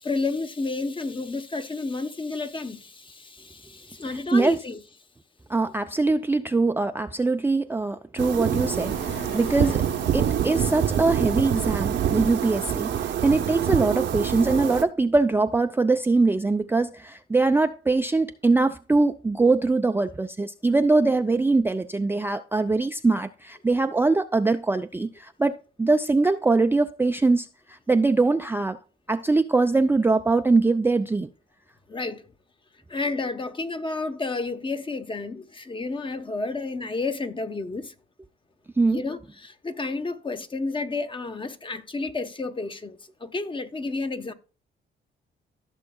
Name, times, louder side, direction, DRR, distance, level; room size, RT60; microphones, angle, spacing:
voice 1, 0.0-4.9 31.9-32.3 32.9-37.9 38.9-44.3, left 3 dB, 25° left, 0.9 m, -31 dB
voice 2, 4.1-4.6 5.5-9.8 10.1-28.8 29.1-31.3 38.8-39.0, right 3 dB, 10° right, 0.4 m, -22 dB
sound 1, 8.2-14.8, right 9 dB, 65° right, 0.8 m, -26 dB
sound 2, 8.5-13.6, left 3 dB, 75° left, 2.9 m, -44 dB
15.0 x 6.3 x 2.3 m
cardioid pair, 90°, 20 cm